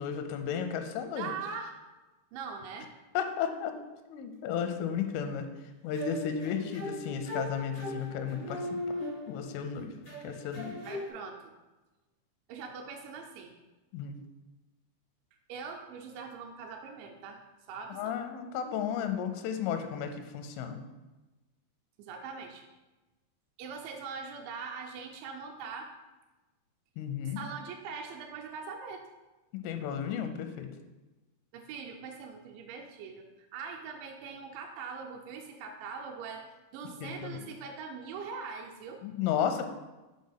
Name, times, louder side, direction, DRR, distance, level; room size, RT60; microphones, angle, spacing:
voice 1, 0.0-1.3 3.1-3.7 4.1-5.5 5.8-8.7 9.3-10.0 10.2-10.8 13.9-14.2 18.0-20.8 27.0-27.4 29.5-30.7 37.0-37.4 39.0-39.6, left 8 dB, 85° left, 7 dB, 3.1 m, -33 dB
voice 2, 1.2-1.8 2.3-2.9 10.8-11.5 12.5-13.5 15.5-17.4 17.7-18.2 22.0-22.7 23.6-25.9 27.2-29.0 31.5-39.0, right 5 dB, 80° right, 2 dB, 2.8 m, -42 dB
sound 1, 5.9-9.6 10.0-11.1, left 1 dB, 70° left, 0.6 m, -39 dB
7.6 x 3.7 x 5.6 m, 1.1 s
omnidirectional pair, 5.5 m